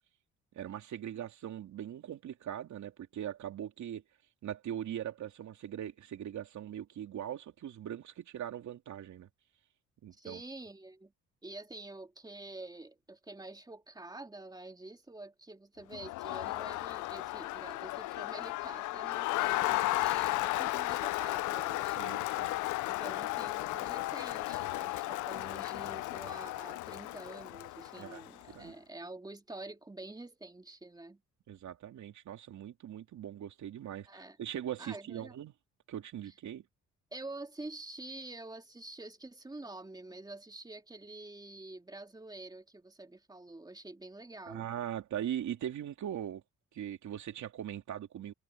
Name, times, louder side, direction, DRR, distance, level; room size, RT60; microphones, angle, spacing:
voice 1, 0.5-4.0 4.4-9.3 10.0-10.4 22.0-22.5 28.0-28.7 31.5-35.5 35.9-36.6 44.5-46.4 46.7-48.3, right 10 dB, 70° right, 3.3 m, -40 dB
voice 2, 10.1-11.1 11.4-22.4 22.8-31.2 34.1-34.4 34.8-35.3 37.1-44.7, right 2 dB, 15° right, 2.3 m, -47 dB
Crowd, 15.9-28.5, left 18 dB, 80° left, 0.4 m, -34 dB
cardioid pair, 90°, 30 cm